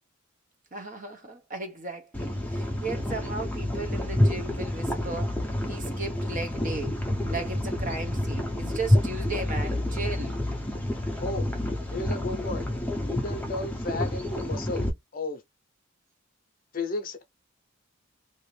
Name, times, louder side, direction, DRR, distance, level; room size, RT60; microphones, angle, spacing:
voice 1, 0.7-10.4, right 3 dB, 40° right, 0.8 m, -36 dB
sound 1, 2.1-14.9, left 1 dB, 10° left, 0.7 m, -28 dB
voice 2, 11.2-11.5 11.9-12.7 13.0-15.4 16.7-17.2, left 2 dB, 45° left, 0.7 m, -33 dB
2.7 x 2.5 x 3.2 m
head